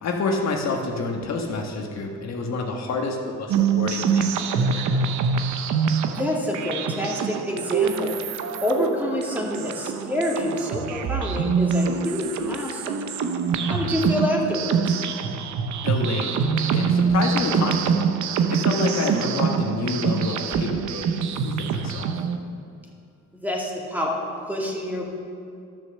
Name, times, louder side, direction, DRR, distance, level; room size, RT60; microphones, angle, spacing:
voice 1, 0.0-5.0 15.8-16.4 16.7-18.0 18.5-22.1, left 3 dB, 60° left, 1 dB, 1.3 m, -28 dB
sound 1, 3.5-22.4, right 6 dB, 70° right, 0.8 m, -25 dB
voice 2, 6.1-8.1 8.6-12.9 13.7-15.0 23.4-25.0, left 1 dB, 5° right, -3 dB, 2.3 m, -27 dB
12.0 x 6.6 x 6.5 m, 2.5 s
cardioid pair, 90°, 30 cm